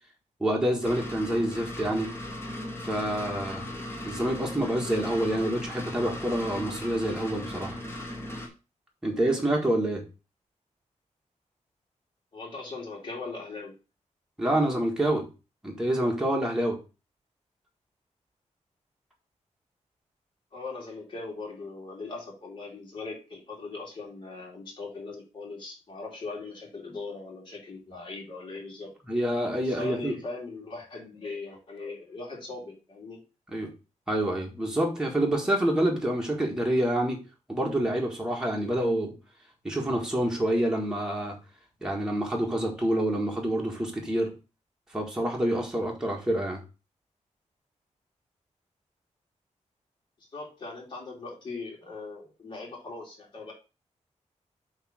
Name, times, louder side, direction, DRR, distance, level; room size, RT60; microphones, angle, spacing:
voice 1, 0.4-2.1 2.8-3.7 4.0-7.8 9.0-10.0 14.4-15.2 15.6-16.8 29.1-30.1 33.5-33.7 34.1-37.2 37.5-39.1 39.6-41.4 41.8-44.3 44.9-46.6, right 1 dB, 5° right, -1 dB, 1.6 m, -27 dB
sound 1, 0.8-8.5, left 1 dB, 20° left, 1.8 m, -37 dB
voice 2, 12.3-13.8 20.5-28.9 29.6-33.2 50.3-53.5, left 3 dB, 40° left, -2 dB, 2.9 m, -40 dB
8.0 x 3.2 x 6.3 m, 0.30 s
wide cardioid pair, 180°, 13 cm